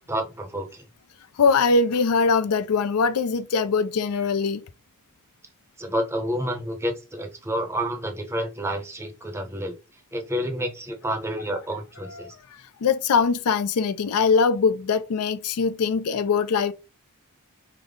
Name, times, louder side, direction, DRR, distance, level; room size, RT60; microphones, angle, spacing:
voice 1, 0.1-0.9 5.8-12.4, equal, 10° right, 0.6 m, -29 dB
voice 2, 1.4-4.6 12.2-12.3 12.8-16.7, left 5 dB, 80° left, 0.4 m, -22 dB
3.3 x 2.0 x 3.6 m
head